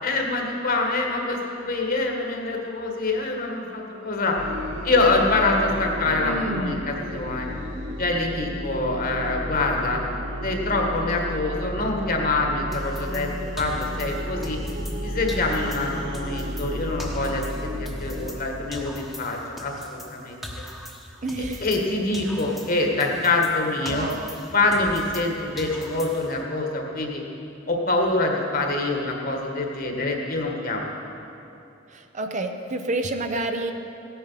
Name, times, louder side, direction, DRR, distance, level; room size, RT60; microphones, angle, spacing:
voice 1, 0.0-4.4 4.8-7.5 8.0-10.0 10.4-14.6 15.0-20.4 21.6-24.1 24.5-27.2 27.7-30.9, left 2 dB, 50° left, 1 dB, 1.7 m, -25 dB
sound 1, 4.3-18.3, equal, 70° right, 2.1 m, -33 dB
voice 2, 6.2-6.9 21.2-21.7 23.9-24.2 31.9-33.7, right 2 dB, 40° right, 6 dB, 0.7 m, -29 dB
sound 2, 12.7-15.0 15.3-18.4 18.7-21.9 22.1-25.3 25.6-26.4, equal, ahead, 1.1 m, -40 dB
16.5 x 8.9 x 5.7 m, 2.8 s
head